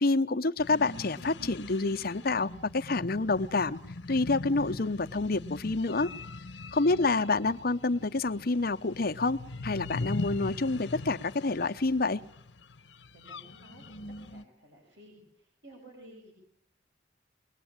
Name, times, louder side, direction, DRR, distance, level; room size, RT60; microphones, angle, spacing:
voice 1, 0.0-3.8 4.1-6.1 6.7-12.2, left 3 dB, 55° left, 0.9 m, -28 dB
sound 1, 0.6-14.4, left 2 dB, 85° left, 1.1 m, -41 dB
voice 2, 6.8-7.2 13.1-16.3, right 1 dB, 90° right, 7.0 m, -53 dB
23.0 x 20.0 x 8.9 m
head